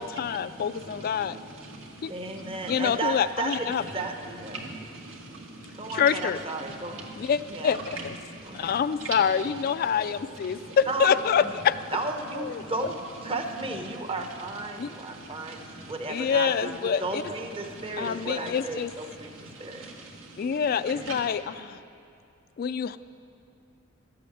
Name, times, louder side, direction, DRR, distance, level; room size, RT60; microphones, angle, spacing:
voice 1, 0.0-1.4 2.0-2.1 2.7-3.8 5.9-6.4 7.2-8.1 8.5-11.8 12.3-12.6 14.8-14.9 16.1-17.2 18.0-18.9 20.4-21.8 22.6-23.0, left 7 dB, 50° left, 14 dB, 0.3 m, -26 dB
voice 2, 1.0-1.3 2.3-2.8 4.5-6.0 6.6-7.3 8.2-8.7 9.0-9.1 10.5-10.8 12.6-12.7 14.7-15.9 17.7-18.3 19.2-20.6 21.1-21.2, right 3 dB, 85° right, -1 dB, 2.0 m, -42 dB
voice 3, 2.1-4.6 5.7-7.0 7.5-7.7 8.4-8.7 10.9-11.1 11.4-11.5 11.9-12.9 13.2-15.6 15.9-19.3 19.6-19.8, right 2 dB, 30° right, 4 dB, 0.8 m, -34 dB
12.0 x 8.5 x 7.7 m, 2.6 s
head